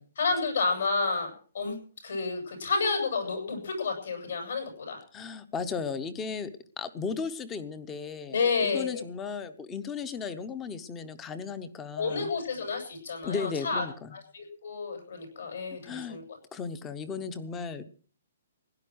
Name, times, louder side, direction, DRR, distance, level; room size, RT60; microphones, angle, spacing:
voice 1, 0.2-1.8 2.0-5.0 8.3-9.0 12.0-13.8 14.1-16.2, left 4 dB, 60° left, 4 dB, 7.6 m, -30 dB
voice 2, 5.1-6.5 6.8-12.3 13.2-14.1 15.8-16.2 16.5-17.9, left 5 dB, 10° left, 14 dB, 0.8 m, -35 dB
16.5 x 11.0 x 6.2 m, 0.42 s
hypercardioid pair, 180°, 0 cm